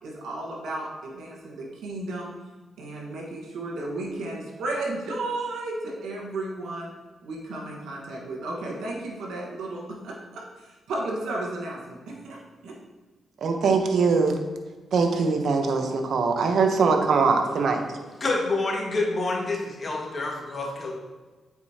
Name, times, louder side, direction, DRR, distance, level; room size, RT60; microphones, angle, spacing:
voice 1, 0.0-2.3 2.8-6.9 7.2-12.8, right 2 dB, 85° right, -2 dB, 1.4 m, -34 dB
voice 2, 13.4-14.4 14.9-17.8, right 4 dB, 70° right, 5 dB, 0.8 m, -22 dB
voice 3, 18.2-20.9, left 2 dB, 45° left, -2 dB, 1.7 m, -27 dB
8.2 x 4.9 x 2.8 m, 1.3 s
cardioid pair, 70°, 0 cm